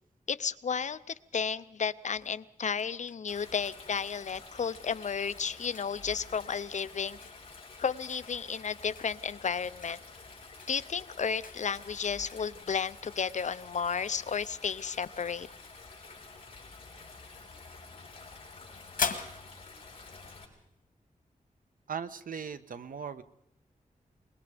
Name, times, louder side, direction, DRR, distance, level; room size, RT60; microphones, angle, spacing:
voice 1, 0.3-1.0 1.3-7.2 7.8-10.0 10.7-15.5, left 6 dB, 60° left, 14 dB, 0.7 m, -33 dB
sound 1, 2.1-20.9, left 6 dB, 80° left, 1.9 m, -45 dB
Stream, 3.3-20.4, left 4 dB, 40° left, 5.9 m, -50 dB
voice 2, 21.9-23.2, right 7 dB, 90° right, 11 dB, 1.2 m, -38 dB
24.5 x 21.5 x 5.1 m, 0.75 s
wide cardioid pair, 140°, 14 cm